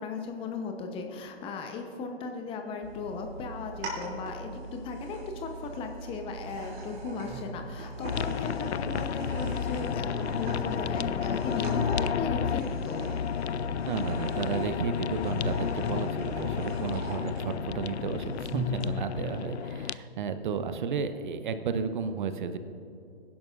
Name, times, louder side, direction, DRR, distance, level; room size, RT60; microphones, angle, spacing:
voice 1, 0.0-13.1, left 4 dB, 15° left, 4 dB, 0.8 m, -37 dB
sound 1, 2.8-18.9, right 2 dB, 25° right, 2.9 m, -40 dB
sound 2, 8.0-19.9, left 8 dB, 80° left, 0.5 m, -31 dB
voice 2, 13.9-22.6, right 6 dB, 45° right, 10 dB, 0.8 m, -33 dB
22.5 x 11.0 x 2.5 m, 2.7 s
figure-of-eight pair, 130°, 33 cm